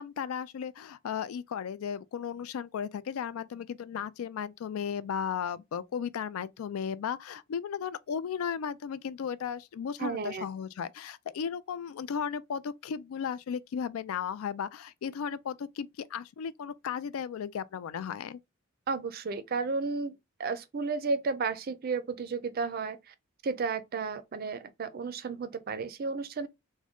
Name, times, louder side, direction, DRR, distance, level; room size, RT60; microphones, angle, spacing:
voice 1, 0.0-18.4, left 7 dB, 90° left, 0.3 m, -35 dB
voice 2, 10.0-10.5 18.9-23.0 23.4-26.5, right 4 dB, 45° right, 0.4 m, -33 dB
3.6 x 2.1 x 3.5 m
head